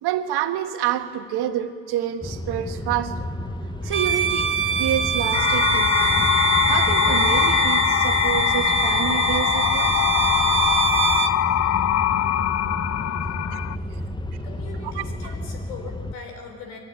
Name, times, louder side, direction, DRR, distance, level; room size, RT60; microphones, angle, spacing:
voice 1, 0.0-3.3 3.8-6.2 6.7-10.0 13.5-13.6 14.8-15.3, right 11 dB, 65° right, 7 dB, 1.7 m, -28 dB
sound 1, 2.2-16.2, left 1 dB, 10° left, 0.9 m, -32 dB
Bowed string instrument, 3.9-11.4, right 6 dB, 30° right, 1.6 m, -24 dB
sound 2, 5.3-13.8, left 11 dB, 40° left, 0.6 m, -22 dB
voice 2, 14.4-16.8, left 5 dB, 85° left, 3 dB, 4.3 m, -40 dB
22.0 x 15.0 x 9.8 m, 2.2 s
supercardioid pair, 75°, 41 cm